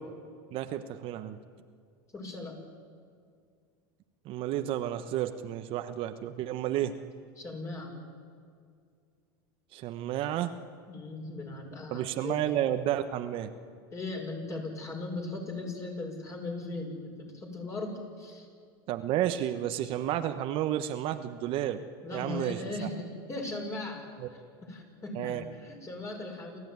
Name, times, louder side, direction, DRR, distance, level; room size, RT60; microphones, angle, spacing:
voice 1, 0.5-1.4 4.2-6.9 9.7-10.5 11.9-13.5 18.9-21.8 22.1-22.6 25.2-25.4, right 12 dB, 50° right, 8 dB, 1.2 m, -31 dB
voice 2, 2.1-2.6 7.4-7.9 10.9-12.6 13.9-18.5 22.0-26.6, left 2 dB, 25° left, 2 dB, 6.2 m, -38 dB
28.5 x 14.5 x 9.6 m, 2.2 s
supercardioid pair, 115°, 12 cm